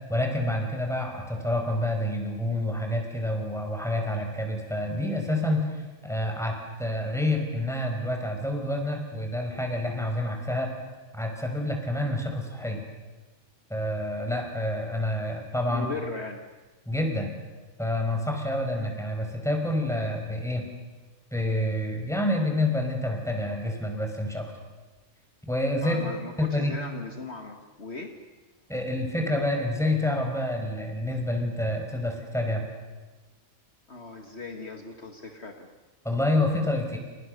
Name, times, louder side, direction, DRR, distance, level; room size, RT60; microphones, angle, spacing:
voice 1, 0.1-10.7 11.1-12.8 13.7-15.9 16.9-17.3 17.8-20.7 21.3-24.5 25.5-26.0 26.4-26.7 28.7-32.6 36.0-37.0, left 1 dB, ahead, 3 dB, 5.4 m, -28 dB
voice 2, 15.7-16.5 25.8-28.1 33.9-35.7, left 3 dB, 50° left, 4 dB, 2.1 m, -38 dB
30.0 x 29.0 x 6.8 m, 1.2 s
omnidirectional pair, 1.4 m